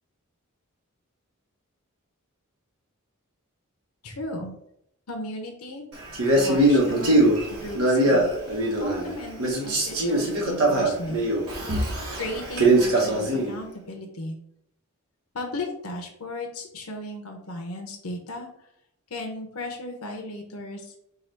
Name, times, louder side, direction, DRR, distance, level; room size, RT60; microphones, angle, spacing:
voice 1, 4.0-4.6 5.1-5.9 6.4-9.4 9.6-11.3 12.1-14.4 15.3-18.7 19.1-20.9, left 1 dB, 90° left, 2 dB, 0.8 m, -36 dB
Male speech man speaking, 6.1-9.1 9.4-13.5, right 1 dB, 75° right, 1.2 m, -22 dB
4.8 x 2.4 x 4.5 m, 0.75 s
head